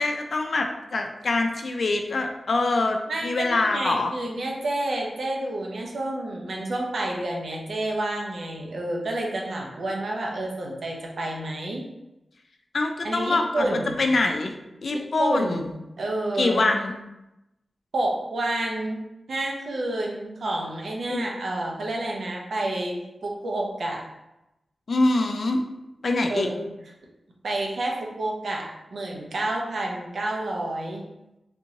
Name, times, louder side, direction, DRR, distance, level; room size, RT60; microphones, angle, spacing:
voice 1, 0.0-3.0 3.2-4.1 12.7-14.5 14.8-15.7 16.4-16.9 21.1-21.3 24.9-25.6 26.0-26.5, left 2 dB, 60° left, 4 dB, 0.4 m, -24 dB
voice 2, 3.1-11.9 13.0-14.0 14.9-16.6 17.9-19.0 19.3-24.0 26.3-26.7 27.4-31.0, right 1 dB, 75° right, -1 dB, 0.7 m, -29 dB
3.5 x 2.7 x 2.9 m, 0.93 s
wide cardioid pair, 115°, 0 cm